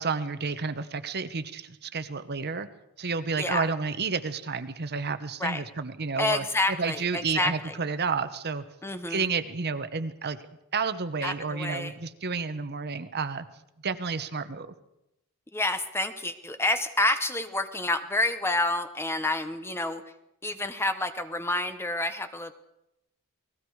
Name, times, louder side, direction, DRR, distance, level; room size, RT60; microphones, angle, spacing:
voice 1, 0.0-2.7 3.0-6.4 6.8-8.6 9.1-10.4 10.7-13.5 13.8-14.7, right 4 dB, 50° right, 11 dB, 1.1 m, -30 dB
voice 2, 3.4-3.7 5.4-5.6 6.2-7.7 8.8-9.3 11.2-11.9 15.5-20.0 20.4-22.5, left 2 dB, 10° left, 10 dB, 1.0 m, -28 dB
29.0 x 19.5 x 4.8 m, 0.87 s
head